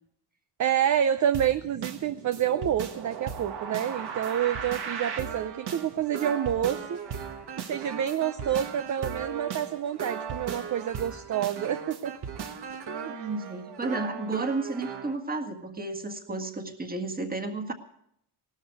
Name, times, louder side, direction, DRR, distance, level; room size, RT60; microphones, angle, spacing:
voice 1, 0.6-7.0 7.6-12.1 13.0-13.3, right 10 dB, 45° right, 11 dB, 0.6 m, -28 dB
sound 1, 1.3-15.2, right 6 dB, 65° right, 1.6 m, -37 dB
voice 2, 13.0-17.7, right 3 dB, 20° right, 5 dB, 1.7 m, -32 dB
18.0 x 13.0 x 4.7 m, 0.71 s
cardioid pair, 130°, 43 cm